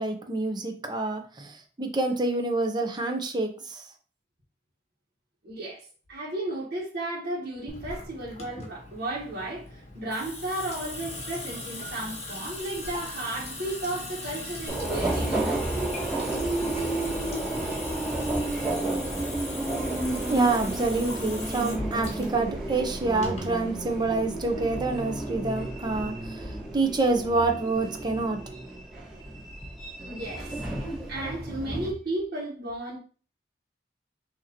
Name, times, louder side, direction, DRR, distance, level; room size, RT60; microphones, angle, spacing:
voice 1, 0.0-3.8 20.2-26.1 26.7-28.4, right 3 dB, 25° right, 0.8 m, -27 dB
voice 2, 5.4-15.5 30.0-30.6 31.1-33.0, right 1 dB, 65° right, 1.5 m, -34 dB
Water tap faucet / Sink (filling or washing) / Drip, 7.7-23.6, left 2 dB, 40° left, 1.3 m, -39 dB
Subway metro underground, 14.7-31.9, right 2 dB, ahead, 1.6 m, -32 dB
6.2 x 2.9 x 3.0 m
head